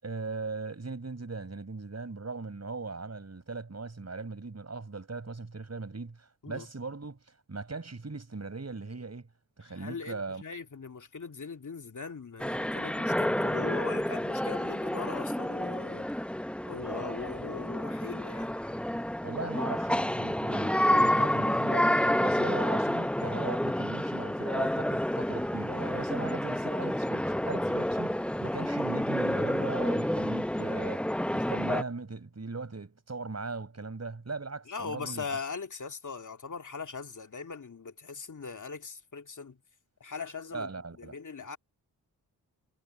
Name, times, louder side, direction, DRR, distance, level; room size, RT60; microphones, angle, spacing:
voice 1, 0.0-7.2 7.5-9.3 9.6-10.4 19.2-35.4 40.5-41.1, right 3 dB, 40° right, 6.9 m, -39 dB
voice 2, 9.7-16.1 16.7-18.5 34.7-39.6 40.0-40.7 41.0-41.6, left 5 dB, 45° left, 2.6 m, -40 dB
sound 1, 12.4-31.8, left 1 dB, 5° left, 0.8 m, -29 dB
supercardioid pair, 40°, 41 cm